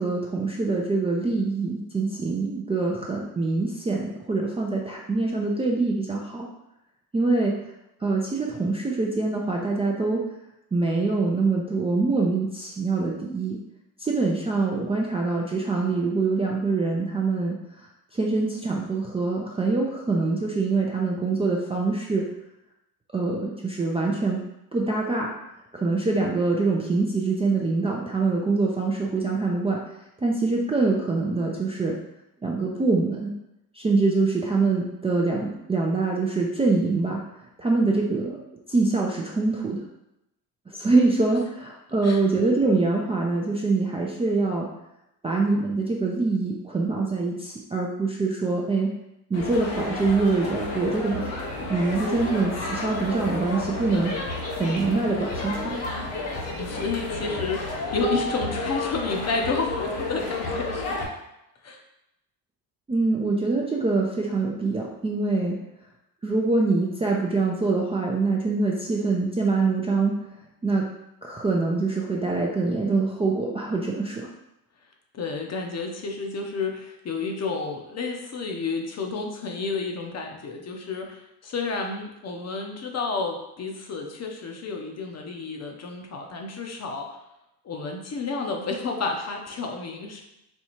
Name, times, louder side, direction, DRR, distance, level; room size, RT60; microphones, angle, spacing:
voice 1, 0.0-6.5 7.1-7.5 8.0-10.2 10.7-13.6 14.0-17.5 18.1-22.3 23.1-24.4 24.7-25.3 25.7-29.8 30.2-32.0 32.4-33.3 33.7-37.2 37.6-38.4 38.7-39.8 40.7-44.7 45.2-48.9 49.3-51.3 51.7-54.1 54.6-55.8 62.9-65.6 66.2-70.1 70.6-70.9 71.2-74.3, right 3 dB, 15° right, -2 dB, 0.4 m, -24 dB
sound 1, 49.3-61.1, left 2 dB, 85° left, 0.9 m, -31 dB
voice 2, 56.6-61.1 61.6-61.8 75.1-87.1 87.6-90.2, left 4 dB, 40° left, 2 dB, 0.7 m, -30 dB
4.3 x 2.3 x 2.9 m, 0.87 s
supercardioid pair, 85°, 42 cm